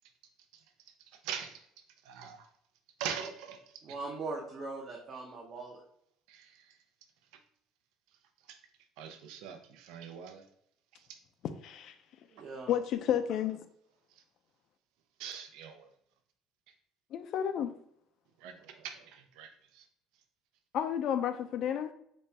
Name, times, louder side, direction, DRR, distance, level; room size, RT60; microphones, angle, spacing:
voice 1, 1.2-1.6 2.0-2.5 3.0-3.6 6.3-6.7 8.5-8.6 9.0-10.4 11.1-11.2 15.2-15.9 18.4-19.8, right 8 dB, 75° right, 0.5 m, -42 dB
voice 2, 3.8-5.8 12.3-12.7, right 3 dB, 35° right, 0.6 m, -40 dB
voice 3, 11.6-11.9 12.7-13.6 17.1-17.7 20.7-21.9, left 9 dB, 45° left, 0.3 m, -31 dB
4.1 x 2.3 x 3.3 m
cardioid pair, 165°, 0 cm